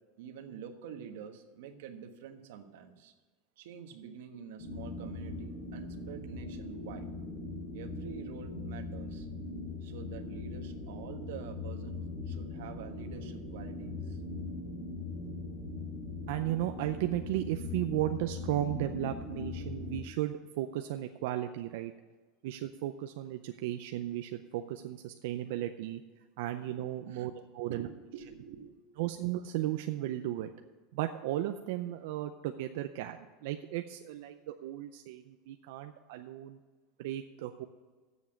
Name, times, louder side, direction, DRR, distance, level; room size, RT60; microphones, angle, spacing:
voice 1, 0.2-3.1 3.6-7.1 7.7-9.3 9.8-14.2 23.5-23.6 27.1-27.3 27.7-28.8, right 7 dB, 80° right, 6 dB, 1.3 m, -47 dB
sound 1, 4.6-20.0, left 3 dB, 55° left, 4.0 m, -40 dB
voice 2, 16.3-21.9 22.4-26.0 26.4-27.9 29.0-30.5 30.9-33.2 33.4-36.6 37.0-37.7, right 13 dB, 65° right, 6 dB, 0.5 m, -35 dB
8.2 x 7.2 x 8.6 m, 1.3 s
supercardioid pair, 180°, 0 cm